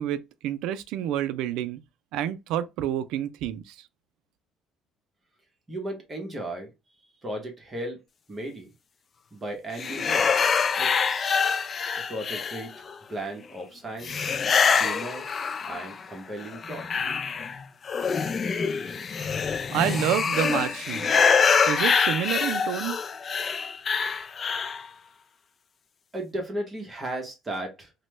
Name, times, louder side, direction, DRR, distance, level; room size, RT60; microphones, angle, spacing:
voice 1, 0.0-1.8 2.1-3.8 19.7-21.2 21.7-23.0, right 11 dB, 80° right, 0.3 m, -28 dB
voice 2, 5.7-6.7 7.2-8.0 8.3-8.7 9.3-10.4 10.7-11.4 12.0-14.3 14.7-15.2 15.7-17.0 26.1-27.9, right 1 dB, 25° right, 1.0 m, -36 dB
sound 1, 9.8-12.9 14.0-16.0 16.4-24.9, left 6 dB, 40° left, 0.3 m, -25 dB
3.0 x 2.1 x 3.1 m
cardioid pair, 105°, 0 cm